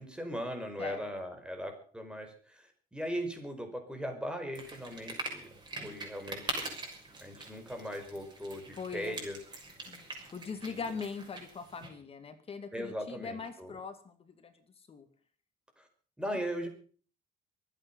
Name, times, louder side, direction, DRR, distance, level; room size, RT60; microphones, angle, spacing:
voice 1, 0.0-5.5 5.8-6.8 7.2-9.4 10.6-10.8 12.7-13.7 15.8-15.9 16.2-16.7, equal, 5° right, 5 dB, 5.1 m, -39 dB
sound 1, 4.5-11.9, right 2 dB, 25° right, 6.4 m, -43 dB
voice 2, 8.7-9.2 9.9-10.1 10.3-14.5 14.9-15.1, left 5 dB, 35° left, 8 dB, 2.4 m, -41 dB
24.0 x 9.1 x 5.6 m, 0.43 s
cardioid pair, 110°, 17 cm